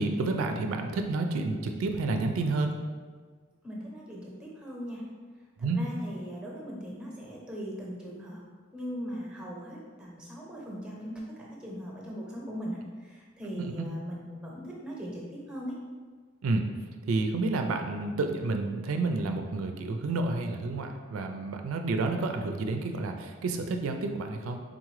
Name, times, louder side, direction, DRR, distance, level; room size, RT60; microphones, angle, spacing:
voice 1, 0.0-2.8 5.6-5.8 13.6-13.9 16.4-16.7 17.0-24.6, right 3 dB, 80° right, 5 dB, 0.4 m, -30 dB
voice 2, 3.6-5.0 5.6-8.4 8.7-15.7, equal, 5° right, -3 dB, 0.7 m, -39 dB
3.8 x 3.6 x 3.1 m, 1.5 s
head